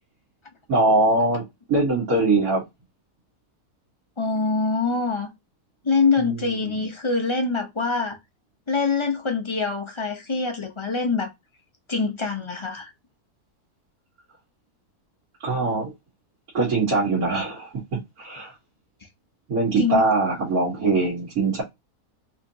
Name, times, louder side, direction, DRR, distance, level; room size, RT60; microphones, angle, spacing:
voice 1, 0.7-1.4 1.7-2.6 6.2-6.7 15.4-15.9 16.5-18.5 19.5-21.6, right 3 dB, 65° right, 2.0 m, -22 dB
voice 2, 4.2-5.3 5.8-8.2 8.7-11.3 11.9-12.9 19.8-20.0, left 4 dB, 30° left, 0.5 m, -24 dB
4.8 x 2.8 x 2.7 m
omnidirectional pair, 1.6 m